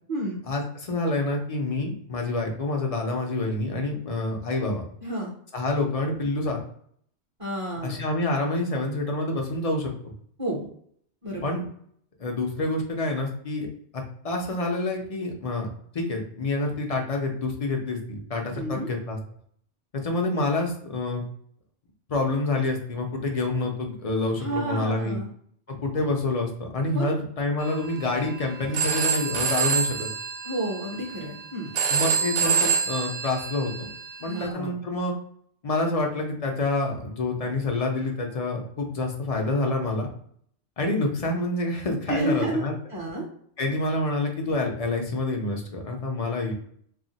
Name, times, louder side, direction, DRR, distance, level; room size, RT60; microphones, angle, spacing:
voice 1, 0.4-4.8 5.5-6.6 7.8-10.1 11.4-11.6 12.2-13.7 13.9-15.7 15.9-19.2 19.9-21.2 22.1-25.2 25.7-29.9 31.9-33.9 34.2-35.1 35.6-40.1 40.8-42.7 43.6-46.5, left 2 dB, 40° left, 1 dB, 0.5 m, -27 dB
voice 2, 5.0-5.3 7.4-8.0 10.4-10.6 11.2-11.6 18.5-18.9 24.4-25.3 26.9-27.1 30.4-31.7 34.3-34.8 42.1-42.6 42.9-43.3, right 1 dB, 35° right, -3 dB, 0.6 m, -30 dB
Telephone, 27.6-34.5, right 6 dB, 70° right, 0.8 m, -28 dB
2.4 x 2.0 x 3.9 m, 0.63 s
omnidirectional pair, 1.2 m